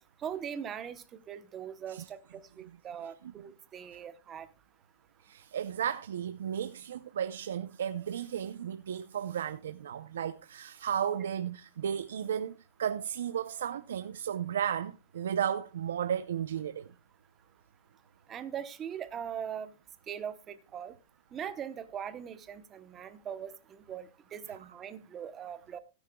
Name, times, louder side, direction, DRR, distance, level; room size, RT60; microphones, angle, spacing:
voice 1, 0.2-4.5 18.3-19.7 20.1-20.9 21.3-25.8, right 8 dB, 20° right, 0.9 m, -41 dB
voice 2, 5.2-16.9, right 9 dB, 90° right, 0.6 m, -34 dB
16.5 x 9.7 x 2.3 m
supercardioid pair, 165°, 0 cm